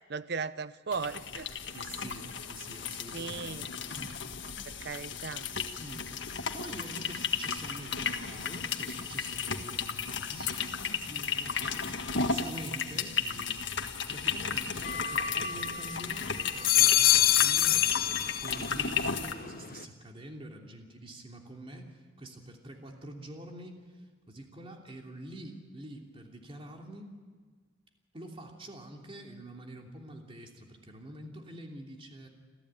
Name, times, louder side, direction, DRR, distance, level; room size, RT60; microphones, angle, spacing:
voice 1, 0.1-1.5 3.1-3.7 4.7-5.5, right 5 dB, 60° right, 14 dB, 0.8 m, -37 dB
sound 1, 0.9-19.3, left 6 dB, 70° left, 1.6 m, -34 dB
voice 2, 1.7-4.2 5.8-6.1 6.5-13.8 14.1-23.8 24.3-27.1 28.1-32.3, right 1 dB, 30° right, 1 dB, 3.0 m, -46 dB
Sanktuarium w Lagiewnikach Cracow, 14.8-16.0 16.4-18.9 19.2-19.8, left 11 dB, 50° left, 0.8 m, -26 dB
27.0 x 15.0 x 9.0 m, 1.5 s
head